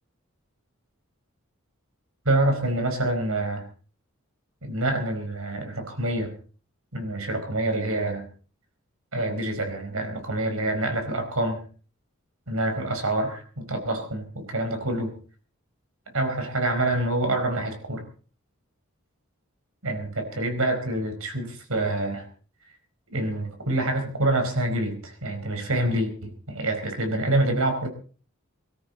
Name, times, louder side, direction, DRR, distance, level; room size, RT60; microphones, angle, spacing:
voice 1, 2.2-3.7 4.6-6.3 6.9-8.3 9.1-11.7 12.5-15.2 16.1-18.0 19.8-22.3 23.1-27.9, right 2 dB, 80° right, 6 dB, 4.7 m, -26 dB
23.5 x 13.5 x 4.1 m, 0.40 s
head